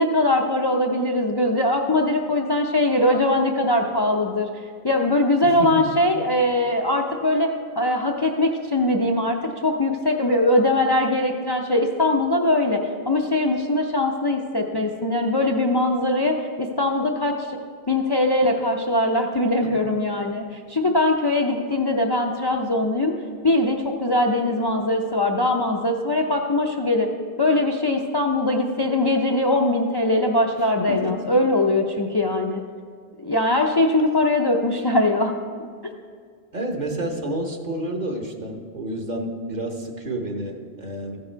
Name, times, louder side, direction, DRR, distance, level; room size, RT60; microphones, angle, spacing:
voice 1, 0.0-4.5 4.8-7.5 7.8-17.6 17.9-23.1 23.4-27.1 27.4-32.6 33.2-35.3, left 1 dB, 35° left, 1 dB, 0.4 m, -21 dB
voice 2, 5.4-5.9 19.6-19.8 30.9-31.3 36.5-41.2, right 1 dB, 45° right, 3 dB, 1.1 m, -30 dB
14.0 x 6.9 x 4.5 m, 2.1 s
omnidirectional pair, 1.0 m